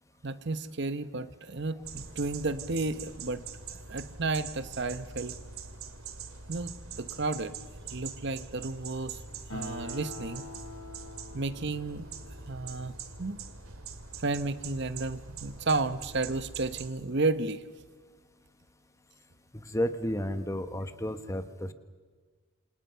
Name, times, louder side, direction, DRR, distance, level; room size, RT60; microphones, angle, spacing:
voice 1, 0.2-3.4 3.7-5.3 6.5-7.6 7.9-9.2 9.5-10.5 11.3-12.1 12.5-13.4 14.2-17.6, right 3 dB, 50° right, 13 dB, 0.9 m, -32 dB
sound 1, 1.8-16.9, right 5 dB, 75° right, 2.2 m, -44 dB
Acoustic guitar, 9.5-13.3, left 2 dB, 80° left, 5.3 m, -45 dB
voice 2, 19.5-21.7, left 1 dB, 15° left, 10 dB, 1.1 m, -32 dB
28.0 x 27.0 x 5.7 m, 1.5 s
head